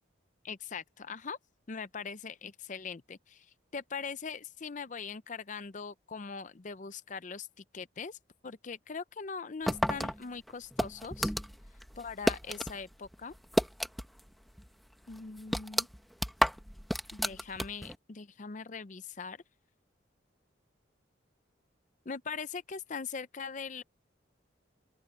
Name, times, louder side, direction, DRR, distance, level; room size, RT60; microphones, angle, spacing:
voice 1, 0.4-1.4 1.7-3.5 3.7-7.5 7.7-8.2 8.4-11.3 12.0-13.3 15.1-15.9 17.1-19.4 22.1-23.8, left 5 dB, 40° left, 0.5 m, -41 dB
sound 1, 9.7-12.8 13.1-14.3 14.6-14.7 15.1-18.0, equal, ahead, 0.9 m, -31 dB
open air
head